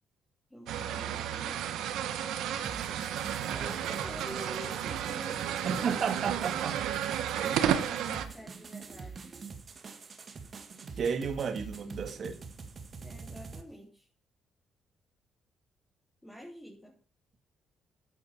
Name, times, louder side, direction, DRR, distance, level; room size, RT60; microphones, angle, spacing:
voice 1, 0.5-2.4 3.1-6.1 7.4-9.4 13.0-14.1 16.2-16.9, equal, 10° left, 3.4 m, -48 dB
sound 1, 0.7-8.3, right 10 dB, 85° right, 1.3 m, -32 dB
sound 2, 2.6-13.6, right 5 dB, 40° right, 2.0 m, -45 dB
voice 2, 5.6-6.8 7.4-7.6 11.0-12.4, right 6 dB, 55° right, 1.9 m, -32 dB
11.5 x 8.8 x 5.9 m
cardioid pair, 90°, 0 cm